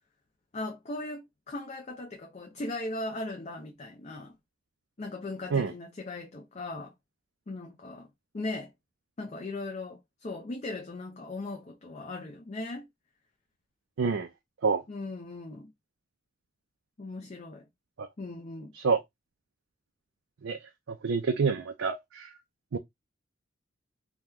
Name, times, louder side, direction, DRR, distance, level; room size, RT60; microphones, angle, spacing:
voice 1, 0.5-4.4 5.0-6.9 7.5-8.7 9.2-12.9 14.9-15.7 17.0-17.7 18.2-18.7, left 2 dB, 35° left, 0.5 m, -38 dB
voice 2, 14.0-14.3 14.6-14.8 18.0-18.1 18.8-19.0 20.4-20.6 20.9-22.3 22.7-22.8, right 5 dB, 80° right, 0.4 m, -27 dB
2.9 x 2.2 x 3.5 m
head